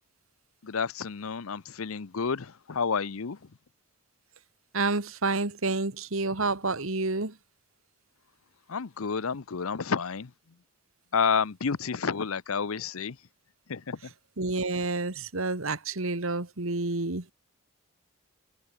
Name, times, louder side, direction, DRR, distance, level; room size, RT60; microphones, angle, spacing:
voice 1, 0.6-3.4 8.7-10.3 11.1-13.2 13.7-14.0, left 6 dB, 80° left, 0.7 m, -30 dB
voice 2, 4.7-7.3 14.4-17.2, right 3 dB, 70° right, 2.0 m, -29 dB
head